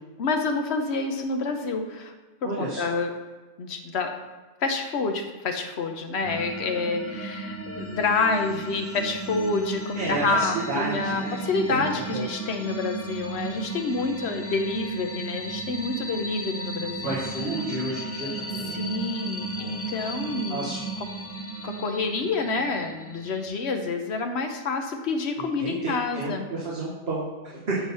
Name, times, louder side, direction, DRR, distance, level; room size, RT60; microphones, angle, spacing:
voice 1, 0.2-2.1 2.4-3.1 3.6-4.2 4.6-17.1 18.7-20.7 21.6-26.5, left 3 dB, 70° left, 5 dB, 1.1 m, -28 dB
voice 2, 2.4-2.9 9.9-11.3 11.7-11.9 12.1-12.3 17.0-18.3 18.5-18.9 19.6-19.7 20.5-20.8 25.4-27.9, right 2 dB, 65° right, -5 dB, 1.5 m, -31 dB
sound 1, 6.2-23.5, right 2 dB, 20° left, 0.5 m, -35 dB
8.7 x 4.0 x 5.5 m, 1.3 s
omnidirectional pair, 1.2 m